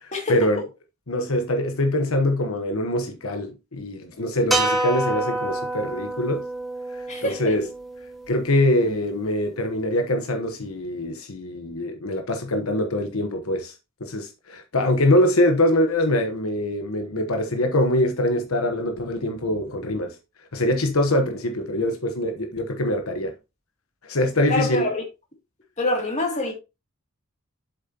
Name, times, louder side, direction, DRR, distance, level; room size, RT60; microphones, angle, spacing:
voice 1, 0.0-0.6 1.1-6.4 6.9-7.7 8.3-13.7 14.0-20.1 20.5-23.3 24.0-24.9, left 1 dB, 80° left, 1.2 m, -23 dB
sound 1, 4.5-8.9, right 2 dB, ahead, 1.7 m, -28 dB
voice 2, 7.1-7.4 24.5-25.0 25.8-26.5, left 2 dB, 35° left, 2.7 m, -25 dB
7.8 x 7.0 x 2.9 m
head